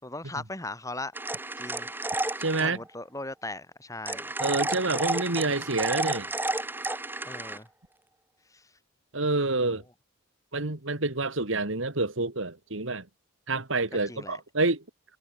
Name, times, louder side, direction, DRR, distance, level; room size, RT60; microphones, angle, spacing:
voice 1, 0.0-1.1 1.6-1.9 2.6-4.2 7.3-7.7 8.5-8.6 14.1-14.4, left 2 dB, 15° left, 5.8 m, -38 dB
sound 1, 1.1-2.7 4.1-7.6, right 2 dB, 10° right, 1.6 m, -31 dB
voice 2, 2.4-2.8 4.4-6.3 9.1-9.8 10.5-13.1 13.5-14.8, right 3 dB, 65° right, 2.3 m, -28 dB
head